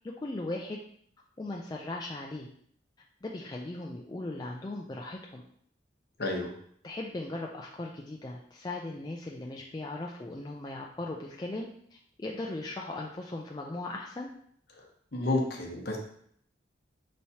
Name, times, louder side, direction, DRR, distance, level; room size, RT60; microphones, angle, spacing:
voice 1, 0.2-0.8 1.4-2.5 3.2-5.4 6.8-14.3, left 2 dB, 20° left, -1 dB, 0.3 m, -38 dB
voice 2, 6.2-6.5 14.7-16.0, left 2 dB, 55° left, 1 dB, 0.9 m, -31 dB
5.6 x 3.2 x 2.8 m, 0.63 s
head